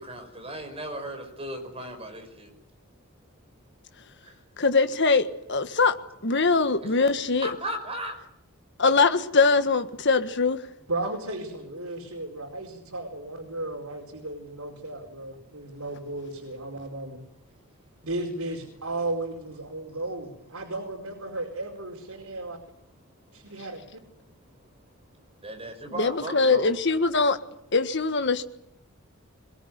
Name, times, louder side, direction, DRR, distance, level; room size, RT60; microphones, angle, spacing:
voice 1, 0.0-2.5 6.8-8.1 11.6-11.7 25.4-26.8, right 1 dB, 25° right, 5 dB, 5.5 m, -36 dB
voice 2, 4.6-6.0 6.2-7.5 8.8-10.6 26.0-27.4 27.7-28.4, left 4 dB, 55° left, 8 dB, 1.6 m, -22 dB
voice 3, 10.9-17.2 18.0-22.6 23.3-23.8, right 2 dB, 80° right, 0 dB, 4.7 m, -34 dB
22.5 x 21.0 x 9.5 m, 0.78 s
head